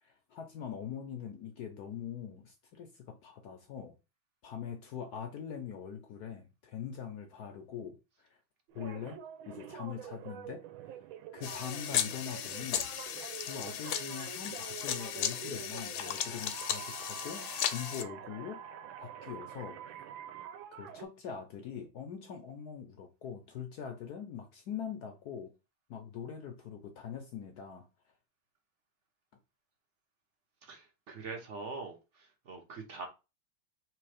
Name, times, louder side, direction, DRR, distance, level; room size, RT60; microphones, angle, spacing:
voice 1, 0.0-4.0 4.4-8.4 8.7-9.2 9.5-10.6 11.3-12.9 13.4-18.6 19.0-19.8 20.7-25.5 25.9-27.9, left 8 dB, 70° left, 0.9 m, -43 dB
sound 1, 8.7-21.0, right 10 dB, 75° right, 1.3 m, -46 dB
sound 2, 11.4-18.0, left 10 dB, 90° left, 1.5 m, -36 dB
voice 2, 30.6-33.1, right 4 dB, 60° right, 0.7 m, -43 dB
3.4 x 3.2 x 4.9 m
omnidirectional pair, 2.4 m